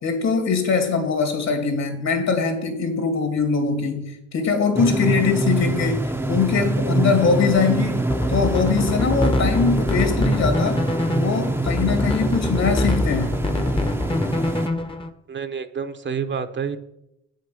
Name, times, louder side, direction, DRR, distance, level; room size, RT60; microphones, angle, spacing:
voice 1, 0.0-10.8 11.1-13.4, left 5 dB, 60° left, 6 dB, 2.6 m, -22 dB
sound 1, 4.7-14.7, right 2 dB, 5° right, 0.7 m, -25 dB
sound 2, 8.0-15.1, left 1 dB, 15° left, 0.9 m, -25 dB
voice 2, 15.3-16.8, right 6 dB, 40° right, 9 dB, 0.8 m, -28 dB
8.5 x 6.5 x 7.0 m, 0.83 s
cardioid pair, 90°, 30 cm